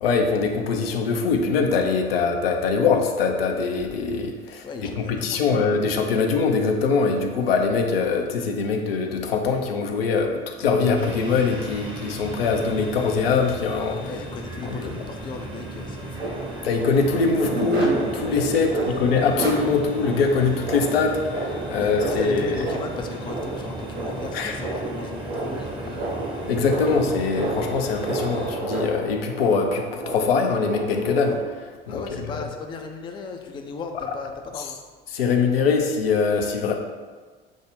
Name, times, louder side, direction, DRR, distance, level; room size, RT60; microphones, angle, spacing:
voice 1, 0.0-4.7 5.0-14.0 14.7-14.9 16.6-22.6 24.3-24.6 26.4-32.0 35.1-36.8, left 4 dB, 75° left, 4 dB, 0.5 m, -23 dB
voice 2, 4.6-5.6 14.0-16.3 21.7-26.1 31.9-34.8, left 4 dB, 15° left, 4 dB, 0.4 m, -36 dB
sound 1, 11.0-28.6, right 2 dB, 15° right, 0.8 m, -36 dB
sound 2, 16.2-31.3, right 2 dB, 75° right, 0.9 m, -31 dB
6.2 x 2.1 x 3.3 m, 1.4 s
figure-of-eight pair, 65°, 30 cm